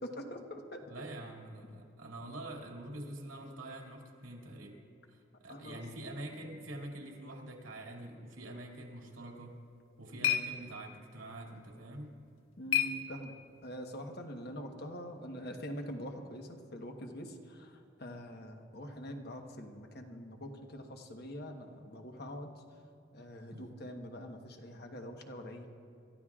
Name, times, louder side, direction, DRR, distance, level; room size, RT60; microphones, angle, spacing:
voice 1, 0.0-1.0 5.5-5.8 12.6-13.3 13.6-22.5 23.1-25.7, equal, 50° left, 4 dB, 1.2 m, -44 dB
voice 2, 0.9-4.8 5.1-9.5 10.0-12.1 23.5-23.7, right 1 dB, 85° right, 0 dB, 2.4 m, -45 dB
sound 1, 9.5-13.7, left 9 dB, 85° left, 0.9 m, -37 dB
27.5 x 14.0 x 2.4 m, 2.6 s
head